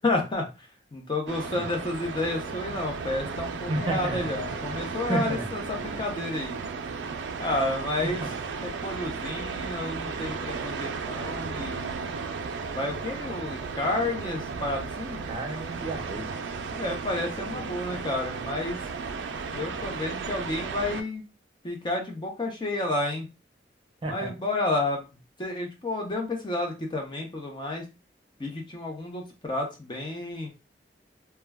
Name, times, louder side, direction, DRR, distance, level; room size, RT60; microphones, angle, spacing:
voice 1, 0.0-6.6 7.4-8.2 8.8-12.1 12.6-15.2 16.7-18.8 19.5-21.2 21.6-23.3 24.1-25.1 25.4-27.8 28.4-30.5, left 2 dB, 25° left, 2 dB, 0.5 m, -31 dB
sound 1, 1.3-21.0, right 5 dB, 90° right, 0.4 m, -35 dB
voice 2, 3.7-4.3 5.1-5.5 8.0-8.3 15.3-16.3 24.0-24.3, right 2 dB, 30° right, 2 dB, 0.6 m, -31 dB
2.2 x 2.2 x 3.4 m, 0.28 s
head